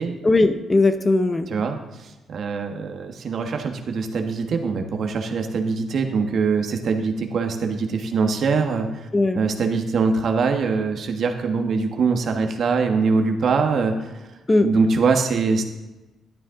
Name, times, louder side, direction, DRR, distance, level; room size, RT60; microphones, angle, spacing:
voice 1, 0.2-1.5 9.1-9.4 14.5-14.7, left 2 dB, 20° left, 9 dB, 0.7 m, -18 dB
voice 2, 1.5-9.1 9.3-14.1 14.6-15.6, right 4 dB, 60° right, 4 dB, 1.4 m, -23 dB
12.0 x 9.6 x 3.8 m, 1.1 s
cardioid pair, 90°, 0 cm